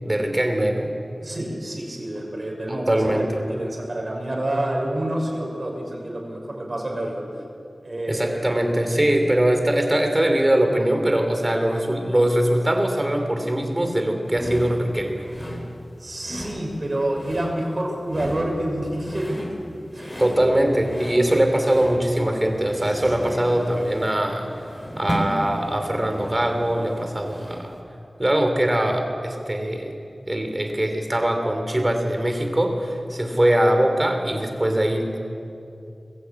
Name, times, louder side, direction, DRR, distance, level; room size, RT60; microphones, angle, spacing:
voice 1, 0.0-0.9 2.7-3.4 8.1-15.2 20.2-24.5 25.0-27.7 28.2-30.0 30.3-35.2, right 1 dB, 25° right, 4 dB, 3.4 m, -22 dB
voice 2, 1.2-7.2 7.8-8.4 9.1-9.2 16.0-19.4 19.9-20.1 22.9-23.5, right 1 dB, 50° right, 0 dB, 5.5 m, -28 dB
sound 1, 14.3-27.8, equal, 25° left, 3.6 m, -35 dB
21.0 x 15.0 x 8.5 m, 2.6 s
wide cardioid pair, 55°, 0 cm